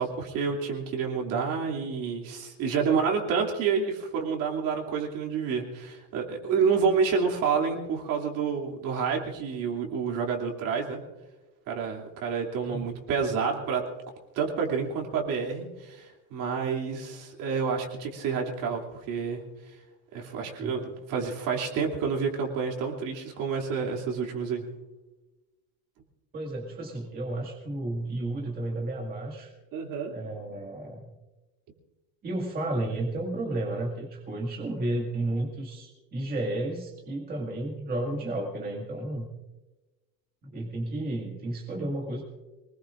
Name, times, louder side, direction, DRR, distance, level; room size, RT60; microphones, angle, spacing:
voice 1, 0.0-11.0 11.7-13.8 14.3-19.4 20.1-24.6 29.7-30.1, right 6 dB, 55° right, 1 dB, 2.9 m, -29 dB
voice 2, 26.3-29.5 30.1-31.1 32.2-39.3 40.4-42.2, right 1 dB, 25° right, -1 dB, 2.0 m, -32 dB
25.0 x 20.0 x 2.6 m, 1.1 s
cardioid pair, 175°, 38 cm